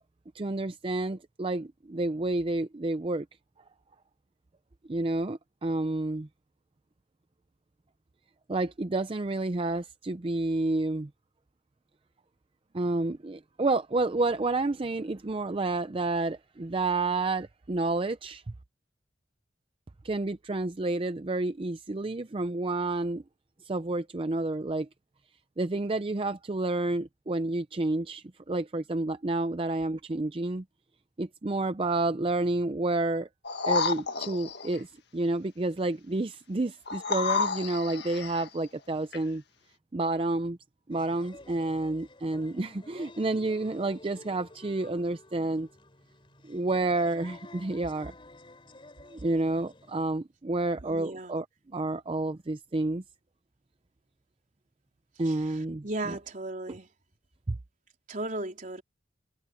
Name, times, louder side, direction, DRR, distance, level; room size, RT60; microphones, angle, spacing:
voice 1, 0.3-3.3 4.9-6.3 8.5-11.1 12.7-18.4 20.0-23.2 23.6-24.9 25.6-30.6 31.2-33.3 33.7-39.4 39.9-40.6 40.9-45.7 46.4-48.1 49.1-53.0 55.2-56.2 57.5-57.6, right 2 dB, 30° right, 0.5 m, -30 dB
sound 1, 33.4-34.8 36.9-38.5 39.1-39.2, left 4 dB, 65° left, 1.7 m, -30 dB
sound 2, 40.9-50.0, left 2 dB, 30° left, 4.1 m, -51 dB
voice 2, 50.8-51.4 55.3-56.9 58.1-58.8, right 2 dB, 45° right, 4.0 m, -36 dB
head